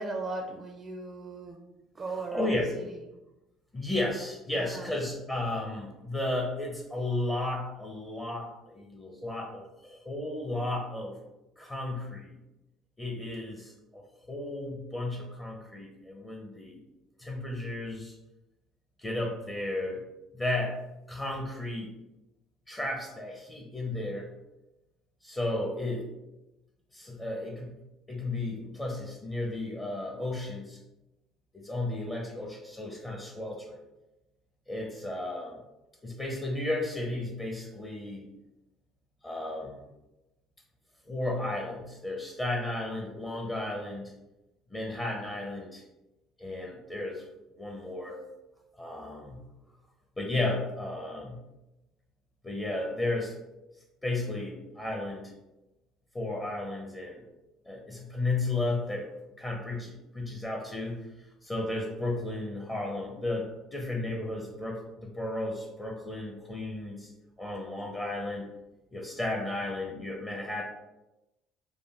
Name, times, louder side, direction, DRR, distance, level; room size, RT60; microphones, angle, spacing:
voice 1, 0.0-1.6 1.9-3.0 4.5-4.9, right 3 dB, 30° right, 2 dB, 0.5 m, -38 dB
voice 2, 2.3-2.7 3.7-11.1 11.6-12.4 13.0-16.8 17.2-18.1 19.0-20.0 20.3-20.8 21.1-21.9 22.7-24.3 25.2-26.1 26.9-27.7 28.1-30.8 31.5-33.8 34.7-35.6 36.0-38.3 39.2-39.8 41.1-44.1 44.7-45.8 46.4-47.2 47.6-48.2 48.8-49.4 50.2-51.4 52.4-53.3 54.0-55.3 56.1-57.2 57.7-59.1 59.4-61.1 61.4-67.1 67.4-68.5 68.9-70.6, left 2 dB, 20° left, -1 dB, 0.8 m, -34 dB
5.1 x 2.2 x 3.5 m, 0.99 s
figure-of-eight pair, 55°, 0 cm